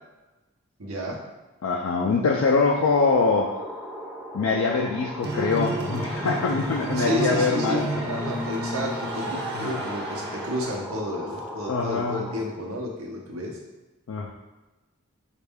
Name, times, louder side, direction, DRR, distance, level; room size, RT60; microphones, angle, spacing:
voice 1, 0.8-1.2 7.0-13.6, equal, 90° right, -1 dB, 0.8 m, -32 dB
voice 2, 1.6-3.7 4.3-7.9 9.5-9.8 11.7-12.3 14.1-14.3, left 4 dB, 85° left, -1 dB, 0.4 m, -24 dB
sound 1, 2.9-12.4, equal, 5° right, 0.4 m, -38 dB
sound 2, 5.2-10.8, right 1 dB, 50° right, 0.6 m, -31 dB
4.2 x 2.4 x 3.5 m, 1.1 s
head